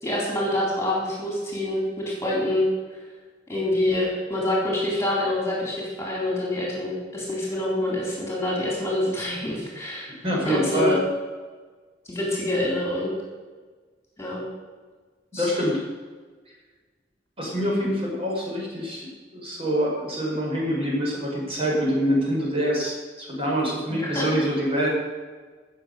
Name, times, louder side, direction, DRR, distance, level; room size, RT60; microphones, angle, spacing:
voice 1, 0.0-2.7 3.5-10.1 10.4-11.0 12.1-13.1 14.2-14.5 15.3-15.5 23.9-24.3, left 1 dB, 15° left, -4 dB, 3.8 m, -26 dB
voice 2, 10.2-11.0 15.3-15.8 17.4-24.9, equal, 30° right, -3 dB, 5.0 m, -25 dB
18.5 x 7.1 x 6.7 m, 1.4 s
head